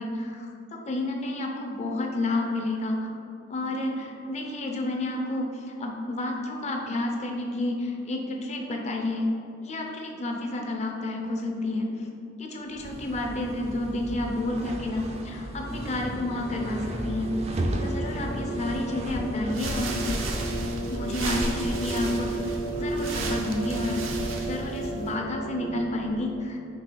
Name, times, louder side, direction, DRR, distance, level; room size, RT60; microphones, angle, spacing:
voice 1, 0.0-3.1 3.5-9.3 9.6-12.1 12.4-17.3 17.8-20.2 20.9-24.0 24.5-26.6, left 2 dB, 35° left, 1 dB, 0.5 m, -30 dB
sound 1, 12.7-24.4, right 1 dB, 35° right, 0.4 m, -36 dB
sound 2, 15.7-26.0, right 2 dB, 70° left, 1.2 m, -34 dB
sound 3, 19.5-25.2, right 2 dB, 85° right, 0.6 m, -34 dB
3.9 x 3.1 x 3.9 m, 2.6 s
head